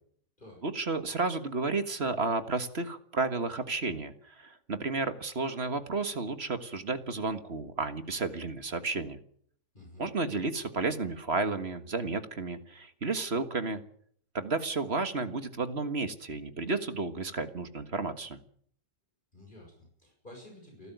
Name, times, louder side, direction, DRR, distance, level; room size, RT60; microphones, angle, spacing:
voice 1, 0.6-9.2 10.0-13.8 14.3-18.4, right 3 dB, 40° right, 10 dB, 1.7 m, -32 dB
voice 2, 9.7-10.1 19.3-20.9, left 1 dB, 30° left, 0 dB, 6.4 m, -51 dB
29.0 x 12.5 x 9.3 m, 0.62 s
omnidirectional pair, 1.7 m